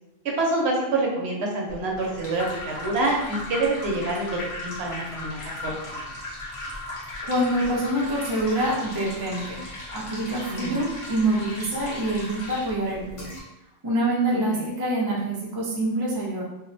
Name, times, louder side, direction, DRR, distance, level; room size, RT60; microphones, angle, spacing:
voice 1, 0.2-4.3 4.6-6.0 6.3-6.4 10.5-10.8 14.3-14.7, right 2 dB, 75° right, -1 dB, 0.8 m, -27 dB
sound 1, 1.7-13.4, left 1 dB, 35° left, 0.6 m, -37 dB
voice 2, 7.3-9.6 9.9-13.3 13.8-16.4, right 1 dB, 30° right, -5 dB, 0.4 m, -26 dB
2.5 x 2.1 x 2.5 m, 0.94 s
omnidirectional pair, 1.1 m